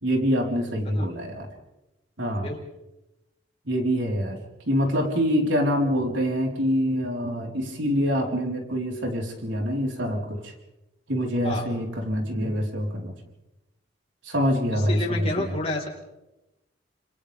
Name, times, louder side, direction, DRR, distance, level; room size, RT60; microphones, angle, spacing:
voice 1, 0.0-1.5 2.2-2.5 3.6-4.4 4.6-10.5 11.1-13.1 14.2-15.5, equal, 85° right, 0 dB, 4.5 m, -25 dB
voice 2, 2.3-2.6 11.4-11.7 14.7-15.9, left 2 dB, 35° left, -2 dB, 4.6 m, -30 dB
30.0 x 27.5 x 3.6 m, 0.94 s
head